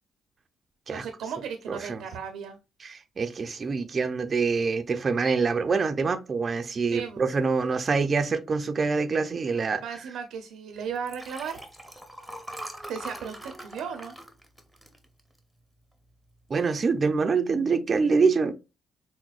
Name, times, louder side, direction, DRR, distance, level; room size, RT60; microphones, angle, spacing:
voice 1, 0.9-2.6 6.9-7.3 9.8-11.6 12.9-14.2, right 7 dB, 85° right, 0.7 m, -36 dB
voice 2, 1.7-2.0 2.8-9.8 16.5-18.5, right 4 dB, 40° right, 0.5 m, -25 dB
Liquid, 11.0-15.6 16.1-16.4 16.6-16.7, right 1 dB, 5° right, 0.8 m, -42 dB
6.0 x 2.1 x 2.4 m
cardioid pair, 90°, 0 cm